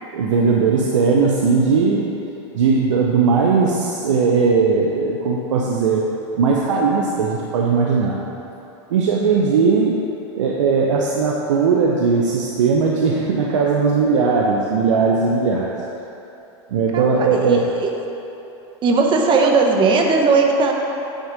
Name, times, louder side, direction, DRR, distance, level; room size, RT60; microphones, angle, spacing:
voice 1, 0.1-2.1 2.5-6.0 6.3-8.2 8.9-10.0 10.4-15.7 16.7-17.7, right 5 dB, 85° right, -2 dB, 0.8 m, -18 dB
voice 2, 16.9-17.9 18.8-20.7, right 4 dB, 30° right, 1 dB, 1.0 m, -17 dB
9.3 x 3.6 x 6.1 m, 3.0 s
hypercardioid pair, 115°, 15 cm